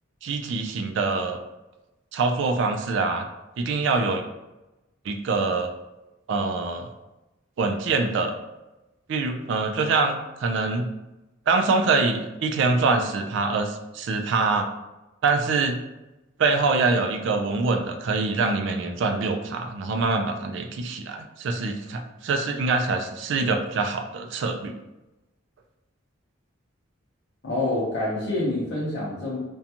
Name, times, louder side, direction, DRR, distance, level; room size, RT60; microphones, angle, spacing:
voice 1, 0.2-1.4 2.1-3.3 3.6-4.2 5.1-5.7 6.3-6.9 7.6-8.3 9.1-10.9 11.5-14.7 15.2-15.8 16.4-24.8, right 3 dB, 60° right, 5 dB, 0.3 m, -24 dB
voice 2, 27.4-29.4, left 2 dB, 65° left, -7 dB, 0.7 m, -27 dB
2.5 x 2.2 x 2.8 m, 1.0 s
head